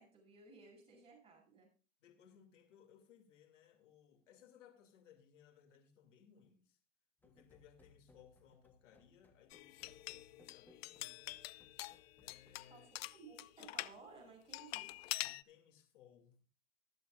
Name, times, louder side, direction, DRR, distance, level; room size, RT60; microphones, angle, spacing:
voice 1, 0.0-1.7 12.7-14.9, right 4 dB, 15° right, 7.7 m, -58 dB
voice 2, 2.0-6.8 7.2-11.3 12.2-12.9 15.2-16.5, left 8 dB, 75° left, 2.8 m, -65 dB
sound 1, 7.2-12.7, left 2 dB, 5° left, 0.9 m, -68 dB
sound 2, 9.5-13.9 14.5-15.4, left 17 dB, 55° left, 0.5 m, -45 dB
24.5 x 8.2 x 2.5 m
supercardioid pair, 145°, 37 cm